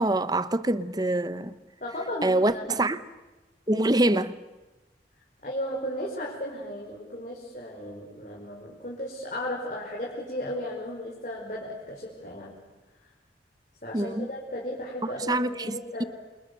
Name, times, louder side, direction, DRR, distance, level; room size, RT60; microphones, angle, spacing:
voice 1, 0.0-1.5 2.2-3.0 3.7-4.3 13.9-14.3 15.0-15.8, right 1 dB, 20° right, 0.9 m, -25 dB
voice 2, 1.8-2.9 3.7-3.8 5.4-12.5 13.8-16.1, left 1 dB, 45° left, 5.2 m, -35 dB
28.5 x 28.0 x 6.9 m
head